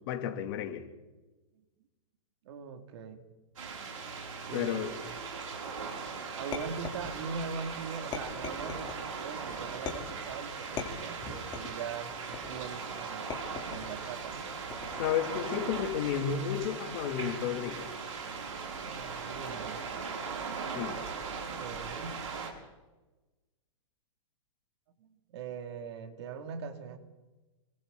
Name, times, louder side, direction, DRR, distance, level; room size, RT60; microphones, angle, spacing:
voice 1, 0.1-0.8 4.5-4.9 15.0-17.9 20.7-21.0, left 9 dB, 45° left, 5 dB, 2.9 m, -32 dB
voice 2, 2.4-3.2 4.5-5.0 6.4-13.3 13.6-14.5 18.8-19.8 21.3-22.2 25.0-27.0, right 6 dB, 55° right, 6 dB, 2.7 m, -41 dB
sound 1, 3.6-22.5, right 5 dB, 85° right, 6.3 m, -39 dB
sound 2, 6.5-7.5 8.1-9.0 9.9-10.3 10.8-11.8 12.3-12.7 13.3-14.0 14.7-15.2, left 7 dB, 25° left, 3.5 m, -40 dB
27.0 x 25.0 x 4.1 m, 1.1 s
hypercardioid pair, 150°, 17 cm